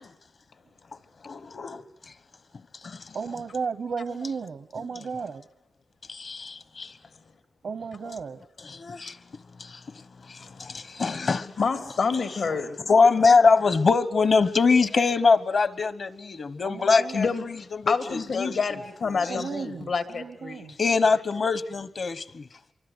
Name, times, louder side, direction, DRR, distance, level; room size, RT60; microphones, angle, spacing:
voice 1, 1.2-1.8 2.8-3.2 6.1-6.9 8.6-9.2 9.6-9.8 10.3-11.5 12.9-18.5 19.1-19.8 20.8-22.4, left 4 dB, 65° left, 1.3 m, -23 dB
voice 2, 3.1-5.4 7.6-8.4 16.6-17.3 19.3-20.7, right 5 dB, 80° right, 1.0 m, -34 dB
voice 3, 10.4-10.7 11.2-12.9 17.1-19.5 19.8-20.7, left 5 dB, 90° left, 2.8 m, -28 dB
25.5 x 24.5 x 8.1 m
cardioid pair, 65°, 0 cm